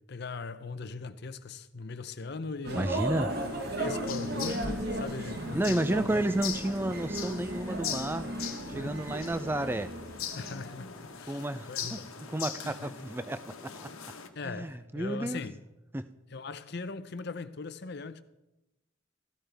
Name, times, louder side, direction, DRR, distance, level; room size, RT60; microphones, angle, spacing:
voice 1, 0.0-2.9 3.8-6.2 8.7-9.2 10.4-12.1 12.6-12.9 14.3-15.6 16.3-18.2, left 4 dB, 50° left, 0.6 m, -40 dB
sound 1, 2.6-11.0, right 1 dB, 45° right, 1.2 m, -35 dB
voice 2, 2.8-3.3 5.5-8.3 8.7-9.9 11.3-12.0 12.3-13.9 14.4-15.4 15.9-16.1, right 1 dB, 10° right, 0.4 m, -31 dB
sound 2, 3.3-14.3, left 8 dB, 85° left, 1.2 m, -41 dB
15.0 x 12.5 x 3.5 m
head